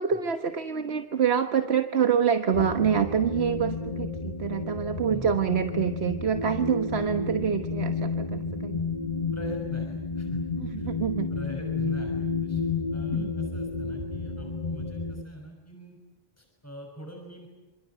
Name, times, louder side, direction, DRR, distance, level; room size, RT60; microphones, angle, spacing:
voice 1, 0.0-8.8 10.5-11.3 13.1-13.3, right 7 dB, 85° right, 8 dB, 1.5 m, -26 dB
sound 1, 2.5-15.2, left 4 dB, 40° left, 1.8 m, -31 dB
voice 2, 9.3-10.4 10.8-10.9 11.3-16.0 16.4-17.5, equal, 15° left, 2 dB, 6.4 m, -43 dB
27.0 x 27.0 x 8.2 m, 1.1 s
omnidirectional pair, 1.0 m